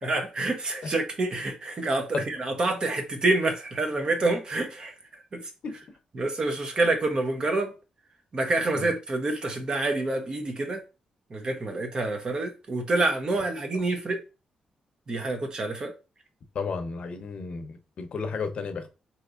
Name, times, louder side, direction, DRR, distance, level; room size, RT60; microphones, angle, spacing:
voice 1, 0.0-4.9 5.3-5.5 6.1-7.7 8.3-10.8 11.3-14.2 15.1-15.9, right 2 dB, 40° right, 0.9 m, -27 dB
voice 2, 16.5-18.9, left 5 dB, 60° left, 0.7 m, -33 dB
4.5 x 2.8 x 2.5 m
cardioid pair, 95°, 2 cm